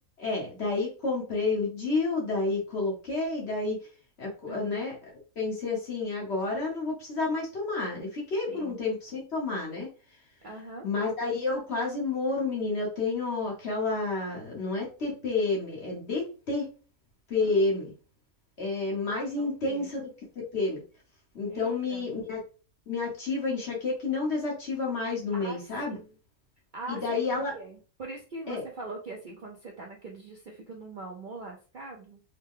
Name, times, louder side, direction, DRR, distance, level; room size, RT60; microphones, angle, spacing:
voice 1, 0.2-3.8 4.2-4.9 5.3-9.9 10.8-16.7 17.3-17.9 18.6-20.0 20.5-20.8 21.3-22.4 22.9-26.0 26.9-27.5 28.5-28.6, left 3 dB, 55° left, -2 dB, 1.6 m, -30 dB
voice 2, 4.5-4.8 8.5-8.9 10.4-10.9 17.5-17.7 19.4-19.9 21.5-22.1 25.4-25.6 25.8-26.2 26.7-32.2, right 3 dB, 55° right, 0 dB, 0.6 m, -42 dB
3.7 x 2.2 x 3.6 m, 0.35 s
omnidirectional pair, 1.4 m